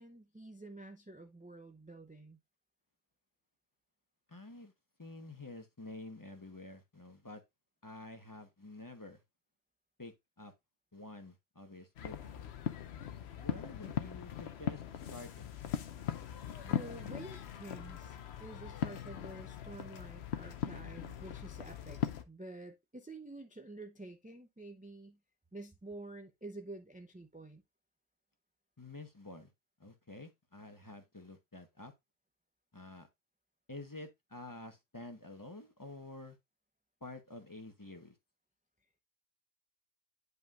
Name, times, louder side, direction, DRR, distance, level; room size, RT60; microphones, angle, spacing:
voice 1, 0.0-2.4 16.6-22.0 22.3-25.2 25.5-27.6, right 2 dB, 10° right, 0.4 m, -49 dB
voice 2, 4.3-4.7 5.0-7.4 7.8-9.2 10.0-10.5 10.9-12.2 13.4-15.5 28.8-29.5 29.8-31.9 32.7-33.1 33.7-36.4 37.0-38.2, left 2 dB, 20° left, 0.9 m, -49 dB
sound 1, 12.0-22.2, left 9 dB, 75° left, 1.0 m, -40 dB
9.2 x 5.5 x 2.4 m
omnidirectional pair, 1.1 m